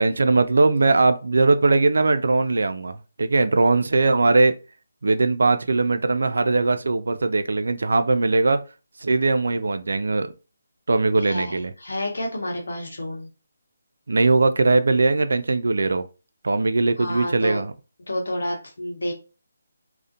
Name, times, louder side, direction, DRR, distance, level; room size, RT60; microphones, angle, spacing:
voice 1, 0.0-4.5 5.0-8.6 9.0-10.3 10.9-11.7 14.1-16.0 16.4-17.7, right 3 dB, 75° right, 0.3 m, -20 dB
voice 2, 11.2-13.3 17.0-17.6 18.1-19.1, left 1 dB, 80° left, 1.0 m, -29 dB
2.4 x 2.1 x 2.7 m
hypercardioid pair, 170°, 0 cm